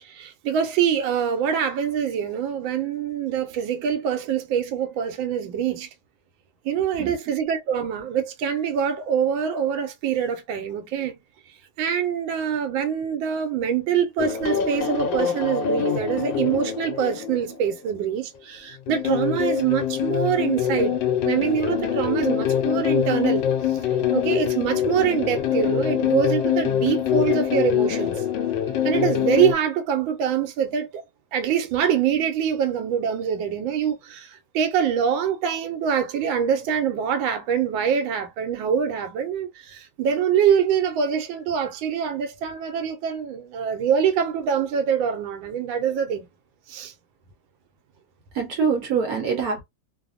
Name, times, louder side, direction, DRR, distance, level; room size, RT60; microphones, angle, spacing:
voice 1, 0.0-5.9 6.6-11.2 11.8-21.0 21.2-23.5 24.1-28.2 28.8-31.0 31.3-46.3 46.7-46.9, right 8 dB, 85° right, 1.4 m, -24 dB
sound 1, 14.2-18.0 18.9-29.5, left 9 dB, 80° left, 1.3 m, -24 dB
voice 2, 48.3-49.6, right 6 dB, 65° right, 0.9 m, -24 dB
3.3 x 2.1 x 2.4 m
omnidirectional pair, 2.1 m